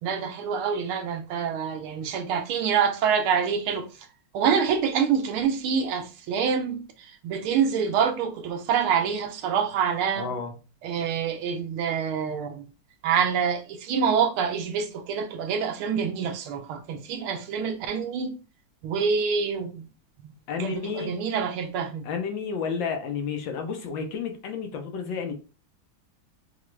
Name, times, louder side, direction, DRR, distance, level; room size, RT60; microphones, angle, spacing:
voice 1, 0.0-3.9 4.3-10.3 10.8-12.6 13.0-18.3 18.8-19.8 20.2-20.3 20.6-22.0, right 7 dB, 80° right, 1.6 m, -26 dB
voice 2, 10.1-10.5 20.5-21.1 22.0-25.3, left 6 dB, 70° left, 1.4 m, -31 dB
5.9 x 2.4 x 3.1 m
omnidirectional pair, 2.3 m